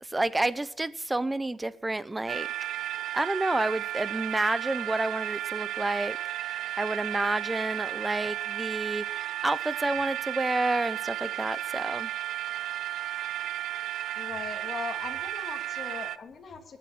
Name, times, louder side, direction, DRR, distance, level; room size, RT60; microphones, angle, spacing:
voice 1, 0.0-2.5 3.1-12.1, right 2 dB, 15° right, 0.8 m, -30 dB
sound 1, 2.3-16.2, right 13 dB, 75° right, 0.7 m, -34 dB
voice 2, 14.2-16.8, left 5 dB, 45° left, 2.9 m, -40 dB
19.5 x 7.8 x 8.7 m
cardioid pair, 90°, 0 cm